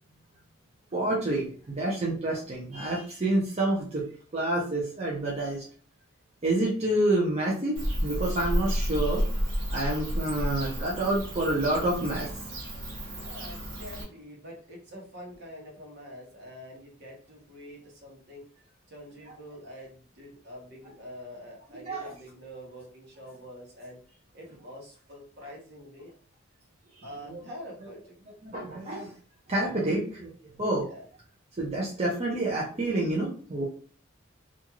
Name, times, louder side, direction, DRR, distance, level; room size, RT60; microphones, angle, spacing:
voice 1, 0.9-4.1 4.3-5.6 6.4-9.2 9.7-12.3 21.8-22.1 27.0-27.4 28.4-29.1 29.5-30.3 30.6-30.9 31.6-33.6, right 1 dB, 30° right, -3 dB, 0.6 m, -28 dB
Bird / Cricket, 7.8-14.0, equal, 85° right, 1.0 m, -31 dB
voice 2, 13.2-18.4 18.9-24.0 24.3-26.1 27.0-28.2 30.7-31.0, equal, 55° right, -1 dB, 1.1 m, -45 dB
2.5 x 2.3 x 2.9 m, 0.43 s
head